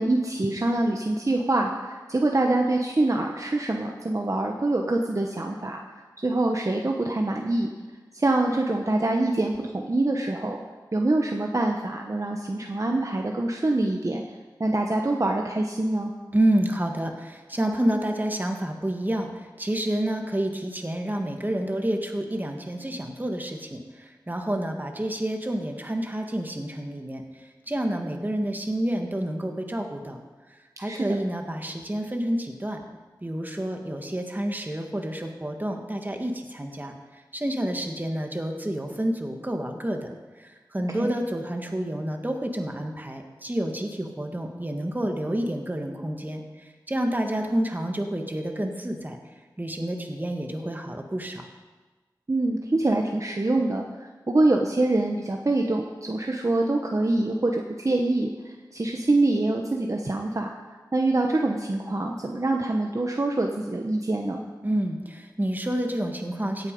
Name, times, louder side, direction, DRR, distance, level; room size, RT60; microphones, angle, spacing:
voice 1, 0.0-5.8 6.2-7.7 8.1-10.6 10.9-14.2 14.6-16.1 30.8-31.2 41.0-41.1 52.3-53.8 54.3-60.5 60.9-64.4, right 2 dB, 40° right, 1 dB, 1.0 m, -25 dB
voice 2, 16.3-27.2 27.7-30.2 30.8-32.8 33.2-36.9 37.3-40.1 40.4-46.4 46.9-49.2 49.6-51.5 64.6-66.7, right 1 dB, 25° right, 3 dB, 1.6 m, -29 dB
16.5 x 8.2 x 5.3 m, 1.3 s
wide cardioid pair, 65°, 8 cm